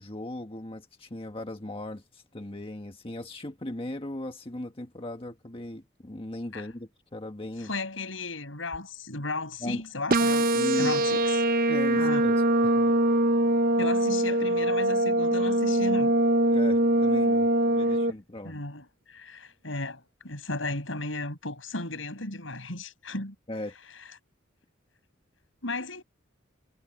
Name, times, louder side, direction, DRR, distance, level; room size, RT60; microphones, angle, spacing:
voice 1, 0.0-7.7 9.6-9.8 10.5-10.9 11.7-12.9 16.5-18.6 23.5-23.7, left 1 dB, 30° left, 1.6 m, -37 dB
voice 2, 7.6-11.4 11.9-12.3 13.8-16.1 18.4-23.3 25.6-26.0, left 2 dB, 85° left, 6.4 m, -35 dB
sound 1, 10.1-18.1, right 1 dB, 50° right, 0.8 m, -23 dB
head